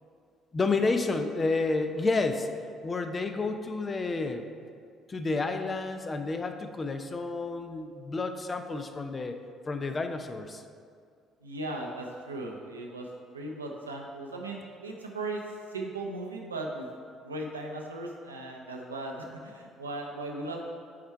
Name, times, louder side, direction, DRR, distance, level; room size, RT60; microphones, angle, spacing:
voice 1, 0.5-2.5 2.8-4.5 5.1-9.4 9.7-10.6, left 3 dB, 30° left, 7 dB, 0.6 m, -30 dB
voice 2, 11.4-13.1 13.3-15.4 15.7-16.9 17.2-20.6, right 2 dB, 85° right, 0 dB, 0.6 m, -37 dB
7.3 x 4.5 x 4.5 m, 2.2 s
figure-of-eight pair, 50°, 0 cm